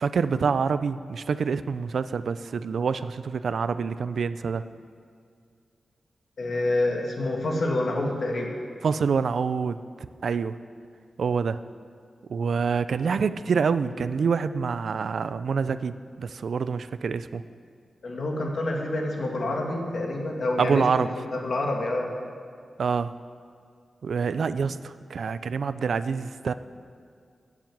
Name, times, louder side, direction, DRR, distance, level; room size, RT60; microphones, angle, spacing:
voice 1, 0.0-4.6 8.8-9.8 10.2-10.6 11.2-11.6 12.3-17.4 20.6-21.1 22.8-23.1 24.0-26.5, right 5 dB, 70° right, 13 dB, 0.4 m, -26 dB
voice 2, 6.4-8.6 18.0-22.1, left 2 dB, 60° left, 0 dB, 2.1 m, -27 dB
16.5 x 7.4 x 7.7 m, 2.2 s
wide cardioid pair, 140°, 0 cm